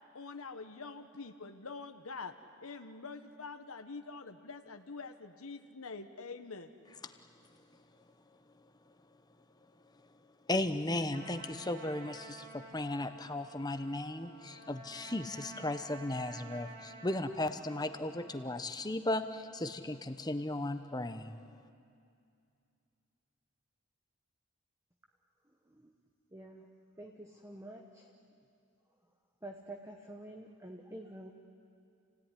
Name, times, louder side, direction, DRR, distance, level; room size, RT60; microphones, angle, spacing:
voice 1, 0.1-2.3 2.6-6.7, left 4 dB, 75° left, 7 dB, 1.2 m, -45 dB
voice 2, 10.5-21.4, left 1 dB, 20° left, 9 dB, 0.9 m, -36 dB
Trumpet, 11.1-18.5, right 2 dB, 45° right, 4.1 m, -52 dB
voice 3, 26.3-26.7 27.0-28.1 29.4-31.3, right 1 dB, 15° right, 2 dB, 1.2 m, -48 dB
29.0 x 17.0 x 10.0 m, 2.4 s
head